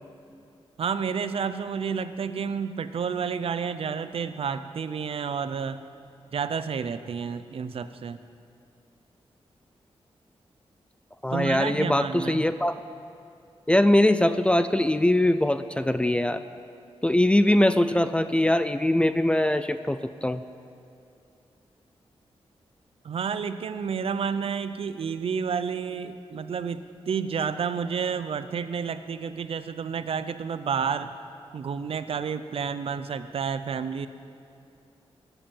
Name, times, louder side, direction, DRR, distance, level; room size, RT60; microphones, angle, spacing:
voice 1, 0.8-5.8 6.3-8.2 11.3-12.5 23.0-31.1 31.5-34.1, right 6 dB, 65° right, 12 dB, 0.6 m, -30 dB
voice 2, 11.2-12.8 13.7-16.4 17.0-20.4, left 1 dB, 10° left, 11 dB, 0.4 m, -22 dB
20.0 x 7.9 x 7.3 m, 2.6 s
wide cardioid pair, 140°, 10 cm